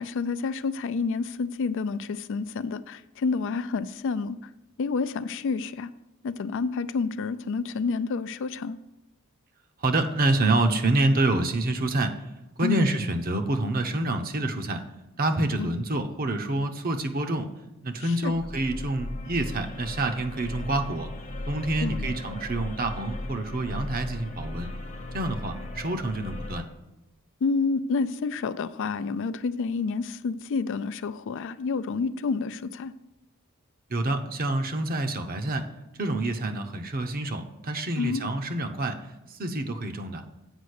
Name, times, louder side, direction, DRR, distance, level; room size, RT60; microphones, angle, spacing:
voice 1, 0.0-4.4 4.8-5.9 6.2-8.8 12.6-12.8 15.6-15.7 18.0-18.3 21.8-22.1 27.4-32.9 38.0-38.3, left 4 dB, 60° left, 14 dB, 0.4 m, -29 dB
voice 2, 9.8-12.2 12.6-14.8 15.2-17.5 17.8-21.1 21.5-24.7 25.1-26.6 33.9-35.7 36.0-39.0 39.3-40.2, right 2 dB, 40° right, 6 dB, 0.8 m, -27 dB
sound 1, 18.3-26.6, left 1 dB, 35° left, 0.9 m, -37 dB
8.1 x 5.1 x 6.5 m, 0.95 s
head